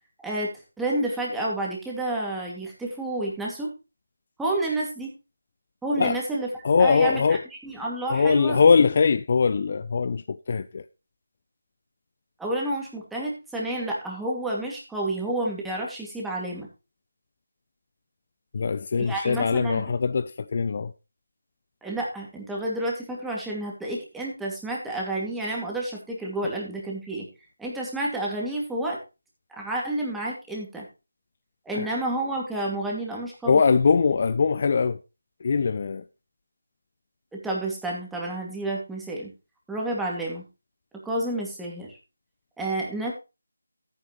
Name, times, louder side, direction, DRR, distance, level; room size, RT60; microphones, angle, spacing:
voice 1, 0.8-3.7 4.4-5.1 5.8-6.5 6.8-7.4 7.6-8.6 12.4-16.7 19.0-19.8 21.8-27.3 27.6-29.0 29.5-30.9 31.7-33.6 37.3-39.3 39.7-40.4 41.0-42.0 42.6-43.1, right 1 dB, 5° right, 2.3 m, -30 dB
voice 2, 6.6-7.4 8.1-10.8 18.5-20.9 31.7-31.9 33.5-35.0 35.4-36.0, left 5 dB, 40° left, 0.5 m, -22 dB
14.0 x 9.1 x 3.1 m
figure-of-eight pair, 160°, 0 cm